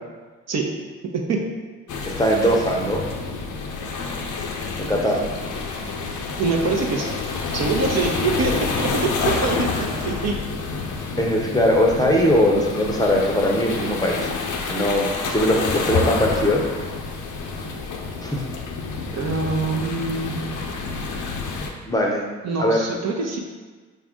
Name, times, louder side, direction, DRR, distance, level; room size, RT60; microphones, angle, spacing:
voice 1, 1.1-1.5 6.4-7.1 7.5-10.4 19.1-20.6 22.4-23.4, right 3 dB, 50° right, 1 dB, 0.7 m, -24 dB
sound 1, 1.9-21.7, left 4 dB, 60° left, 0.6 m, -28 dB
voice 2, 2.0-3.0 4.8-5.2 11.2-14.3 14.7-16.6 18.2-18.5 21.9-22.2 22.6-22.8, equal, 10° left, -1 dB, 0.7 m, -20 dB
4.2 x 2.4 x 3.5 m, 1.4 s
supercardioid pair, 50°, 35 cm